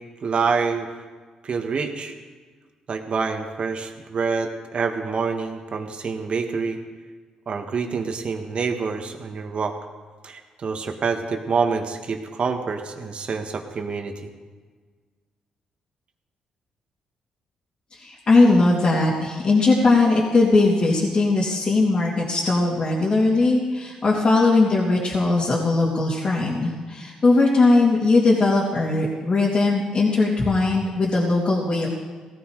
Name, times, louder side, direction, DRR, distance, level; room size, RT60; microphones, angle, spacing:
voice 1, 0.2-0.9 1.4-2.2 2.9-6.8 7.5-9.8 10.2-14.3, right 5 dB, 50° right, 5 dB, 2.0 m, -26 dB
voice 2, 17.9-31.9, left 3 dB, 45° left, -5 dB, 3.2 m, -19 dB
17.5 x 14.0 x 5.0 m, 1.5 s
supercardioid pair, 60°, 2 cm